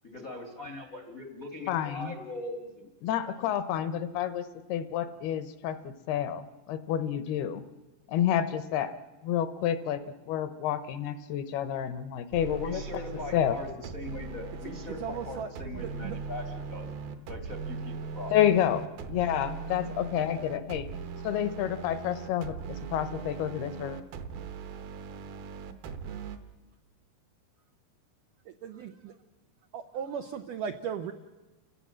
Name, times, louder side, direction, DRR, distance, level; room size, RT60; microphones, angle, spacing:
voice 1, 0.0-2.9 3.4-3.5 3.8-3.9 12.6-18.3, left 2 dB, 50° left, 5 dB, 1.0 m, -41 dB
voice 2, 1.7-2.1 3.0-4.4 4.7-7.6 8.1-8.9 9.2-10.0 10.3-12.8 13.3-13.6 18.3-20.9 21.2-24.0, left 10 dB, 75° left, 11 dB, 2.7 m, -29 dB
sound 1, 12.3-26.4, right 5 dB, 70° right, 2.9 m, -39 dB
voice 3, 14.9-16.2 24.6-24.7 26.1-26.2 28.5-29.1 29.7-31.1, right 7 dB, 85° right, 6 dB, 1.9 m, -37 dB
30.0 x 17.0 x 7.5 m, 1.2 s
omnidirectional pair, 4.9 m